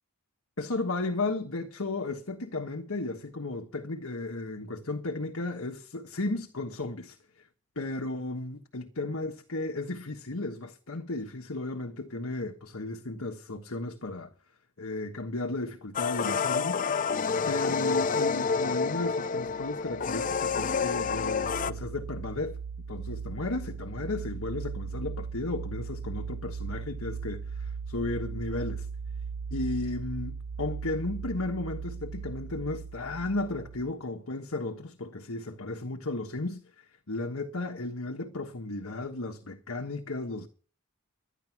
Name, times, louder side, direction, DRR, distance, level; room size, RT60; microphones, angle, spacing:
voice 1, 0.6-7.5 7.7-14.3 14.8-16.9 17.5-22.6 22.9-28.9 29.5-40.5, left 2 dB, 75° left, 1.4 m, -34 dB
sound 1, 15.9-21.7, left 5 dB, 40° left, 0.5 m, -28 dB
sound 2, 19.5-33.9, right 5 dB, 60° right, 2.0 m, -38 dB
12.5 x 10.5 x 6.0 m
head